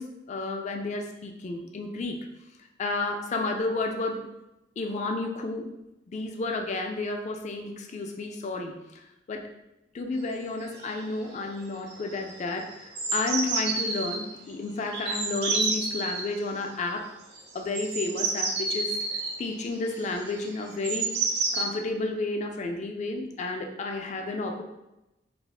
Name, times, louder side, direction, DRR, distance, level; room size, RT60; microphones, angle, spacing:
voice 1, 0.0-2.2 2.8-4.3 4.8-5.7 6.1-9.5 9.9-17.1 17.5-19.0 19.4-21.1 21.5-24.6, left 2 dB, 40° left, 3 dB, 0.3 m, -31 dB
sound 1, 10.3-10.4 10.6-11.0 11.3-11.6 11.9-14.2 14.9-16.3 17.3-21.6, right 3 dB, 60° right, 0.5 m, -30 dB
2.4 x 2.0 x 3.2 m, 0.94 s
head